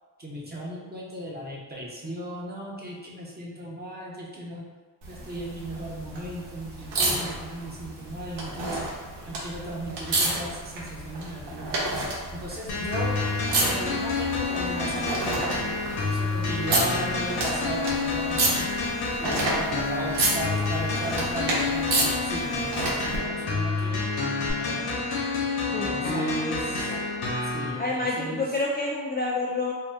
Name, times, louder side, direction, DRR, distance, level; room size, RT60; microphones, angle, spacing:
voice 1, 0.2-4.7 5.1-8.9 9.3-11.9 12.3-18.8 19.2-24.1 24.6-24.9 25.7-26.9 27.5-28.4, right 1 dB, 25° right, -4 dB, 0.8 m, -36 dB
sound 1, 5.0-23.2 24.5-24.6, right 2 dB, 90° right, 0.8 m, -30 dB
sound 2, 12.7-27.7, left 3 dB, 65° left, 0.9 m, -28 dB
voice 2, 25.7-26.3 26.9-27.2 27.8-29.7, left 2 dB, 25° left, -4 dB, 0.3 m, -29 dB
2.7 x 2.2 x 3.3 m, 1.4 s
cardioid pair, 85°, 40 cm